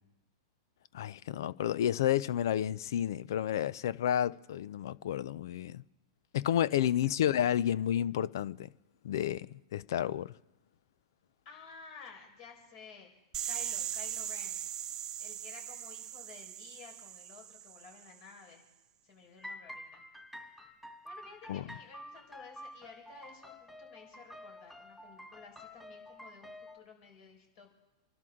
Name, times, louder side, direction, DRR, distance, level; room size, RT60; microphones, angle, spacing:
voice 1, 0.9-5.8 6.3-8.7 9.0-10.3 21.5-21.6, left 10 dB, 70° left, 0.5 m, -31 dB
voice 2, 6.7-7.6 11.4-13.1 13.4-14.6 15.2-18.6 19.0-20.0 21.0-27.7, left 5 dB, 50° left, 4.8 m, -53 dB
sound 1, 13.3-18.1, right 11 dB, 30° right, 0.5 m, -40 dB
sound 2, 19.4-26.8, left 1 dB, 5° left, 2.5 m, -49 dB
27.5 x 12.0 x 3.7 m
hypercardioid pair, 110°, 2 cm